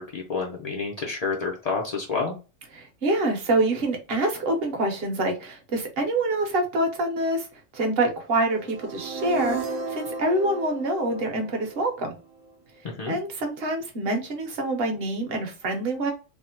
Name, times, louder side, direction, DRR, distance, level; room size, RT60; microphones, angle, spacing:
voice 1, 0.0-2.3 12.8-13.2, left 4 dB, 70° left, -1 dB, 0.3 m, -29 dB
voice 2, 2.7-7.5 7.7-12.1 13.1-16.1, right 2 dB, 50° right, 3 dB, 0.9 m, -26 dB
sound 1, 8.5-12.5, right 3 dB, 80° right, 1.0 m, -34 dB
3.4 x 2.0 x 2.8 m, 0.32 s
omnidirectional pair, 1.4 m